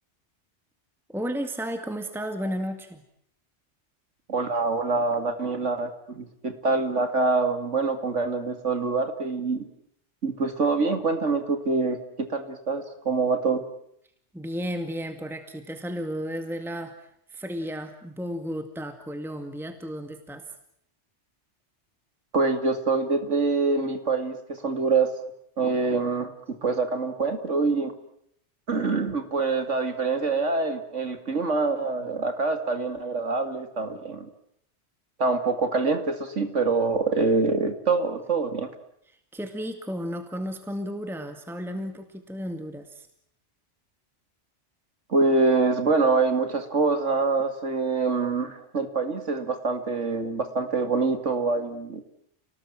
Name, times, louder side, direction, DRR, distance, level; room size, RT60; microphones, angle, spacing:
voice 1, 1.1-3.0 14.3-20.5 39.3-43.1, equal, ahead, 7 dB, 2.1 m, -33 dB
voice 2, 4.3-9.7 10.2-13.6 22.3-25.1 25.6-27.9 28.7-34.3 35.2-38.7 45.1-52.0, right 3 dB, 85° right, 8 dB, 2.7 m, -25 dB
30.0 x 20.0 x 8.9 m, 0.72 s
omnidirectional pair, 1.2 m